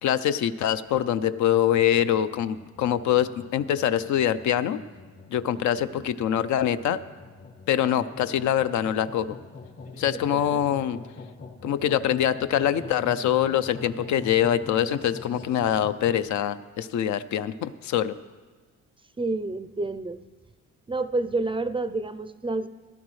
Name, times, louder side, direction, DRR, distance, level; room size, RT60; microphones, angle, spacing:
voice 1, 0.0-4.8 5.3-7.0 7.7-9.3 10.0-11.0 11.6-18.1, left 10 dB, 70° left, 13 dB, 0.5 m, -24 dB
sound 1, 1.3-16.3, left 3 dB, 50° left, 2.3 m, -44 dB
voice 2, 5.5-6.0 10.3-10.6 19.2-20.2 20.9-22.7, right 2 dB, 20° right, 11 dB, 0.4 m, -29 dB
16.0 x 12.0 x 3.2 m, 1.4 s
cardioid pair, 90°, 30 cm